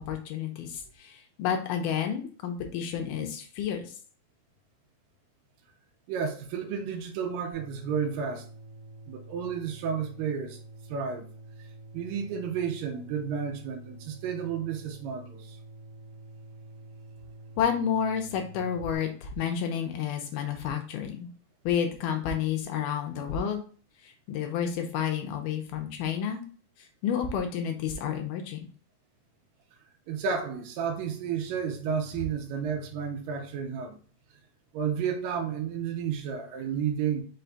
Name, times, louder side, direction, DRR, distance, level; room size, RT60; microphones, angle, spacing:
voice 1, 0.1-3.9 17.6-21.3 21.7-23.6 24.0-26.4 27.0-28.6, left 8 dB, 80° left, 2.1 m, -30 dB
voice 2, 6.1-8.5 9.1-10.6 10.9-11.3 11.9-15.6 30.1-34.0 34.7-37.2, right 7 dB, 85° right, 2.3 m, -32 dB
sound 1, 7.5-18.9, right 2 dB, 70° right, 2.4 m, -48 dB
5.6 x 2.2 x 3.9 m
omnidirectional pair, 4.0 m